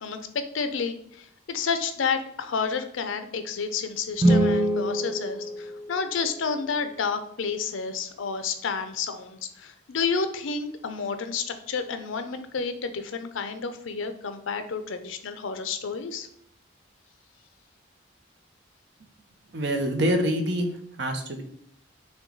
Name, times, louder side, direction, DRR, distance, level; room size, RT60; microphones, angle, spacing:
voice 1, 0.0-16.3, left 5 dB, 85° left, 9 dB, 0.5 m, -30 dB
sound 1, 4.1-6.4, right 1 dB, 20° right, 0.6 m, -24 dB
voice 2, 19.5-20.7 21.0-21.4, equal, 60° right, 5 dB, 0.7 m, -25 dB
5.9 x 2.2 x 3.9 m, 0.67 s
head